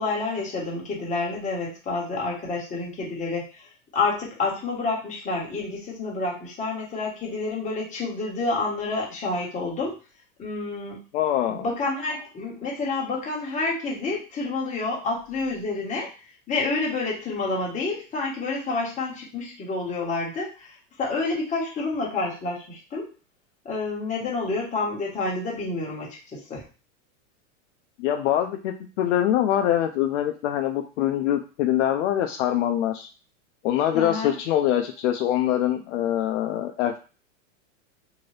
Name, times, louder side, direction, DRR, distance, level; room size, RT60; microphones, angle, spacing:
voice 1, 0.0-9.9 10.4-11.0 11.5-16.1 16.5-23.1 23.6-26.6 33.9-34.4, left 3 dB, 20° left, -3 dB, 1.2 m, -29 dB
voice 2, 11.1-11.7 28.0-33.1 33.6-37.0, left 11 dB, 60° left, 5 dB, 0.5 m, -24 dB
2.7 x 2.5 x 3.2 m, 0.35 s
supercardioid pair, 135°, 40 cm